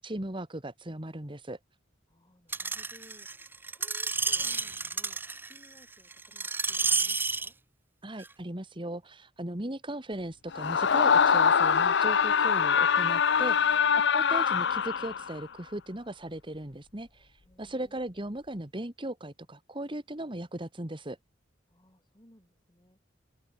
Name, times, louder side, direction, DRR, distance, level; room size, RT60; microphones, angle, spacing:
voice 1, 0.0-1.6 8.0-21.2, right 1 dB, 25° right, 1.9 m, -38 dB
voice 2, 2.1-7.5 13.5-14.2 17.4-18.0 21.7-23.1, equal, 20° left, 6.1 m, -60 dB
Screech, 2.5-7.5 8.2-8.3, right 4 dB, 10° right, 0.6 m, -31 dB
Screaming, 10.5-15.4, left 6 dB, 60° left, 0.6 m, -24 dB
head